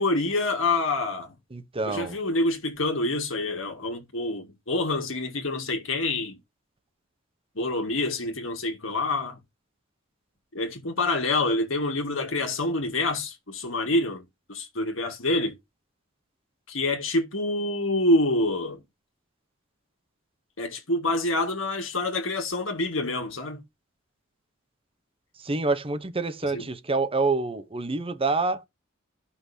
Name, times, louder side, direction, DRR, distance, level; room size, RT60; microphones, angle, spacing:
voice 1, 0.0-1.3 1.9-6.4 7.6-9.4 10.5-14.2 14.5-15.5 16.7-18.8 20.6-23.6 26.5-26.6, left 2 dB, 70° left, 2.0 m, -27 dB
voice 2, 1.5-2.2 25.4-28.6, right 3 dB, 25° right, 0.8 m, -27 dB
14.0 x 5.8 x 2.8 m
head